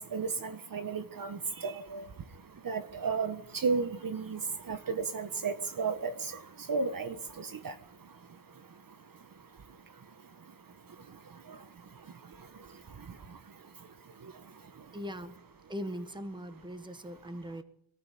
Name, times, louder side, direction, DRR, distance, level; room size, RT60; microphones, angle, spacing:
voice 1, 0.1-2.0 2.6-4.4 4.7-6.1 6.7-7.1 7.6-7.7, right 5 dB, 45° right, 10 dB, 1.5 m, -33 dB
voice 2, 14.9-15.4 15.7-17.6, equal, 10° right, 10 dB, 1.6 m, -40 dB
23.0 x 14.0 x 8.5 m, 0.71 s
wide cardioid pair, 125°, 49 cm